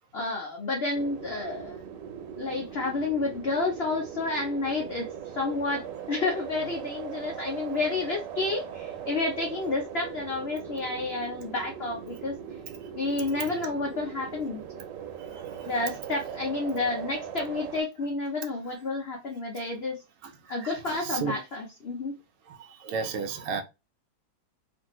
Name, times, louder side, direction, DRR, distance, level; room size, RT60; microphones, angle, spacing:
voice 1, 0.1-1.8 2.3-12.4 12.9-14.7 15.6-20.0 20.5-22.2, left 3 dB, 85° left, 0.5 m, -30 dB
sound 1, 0.9-17.8, right 8 dB, 85° right, 1.2 m, -40 dB
voice 2, 15.3-15.7 20.2-20.3 20.6-21.3 22.5-23.6, right 5 dB, 70° right, 0.7 m, -34 dB
2.6 x 2.5 x 2.9 m
omnidirectional pair, 1.9 m